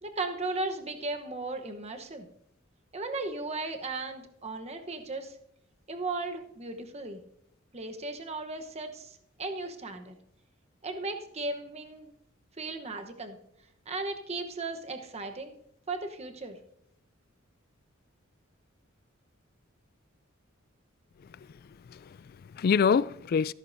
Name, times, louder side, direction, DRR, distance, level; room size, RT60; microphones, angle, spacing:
voice 1, 0.0-2.3 2.9-5.4 5.9-7.2 7.7-10.1 10.8-12.1 12.6-13.4 13.9-15.5 15.9-16.6, right 3 dB, 30° right, 1.0 m, -36 dB
voice 2, 21.3-23.5, left 6 dB, 45° left, 0.3 m, -27 dB
14.0 x 13.0 x 2.6 m
head